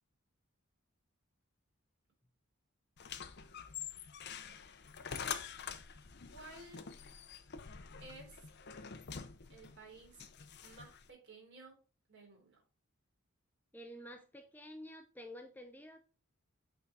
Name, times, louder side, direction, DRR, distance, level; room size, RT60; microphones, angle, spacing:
sound 1, 3.0-11.1, left 7 dB, 50° left, 0.7 m, -46 dB
voice 1, 4.2-4.6 6.3-6.8 8.0-8.5 9.5-10.2 10.6-11.8 12.1-12.6, right 2 dB, 55° right, 3.9 m, -55 dB
voice 2, 13.7-16.0, equal, 10° left, 0.7 m, -50 dB
8.4 x 3.9 x 4.6 m
head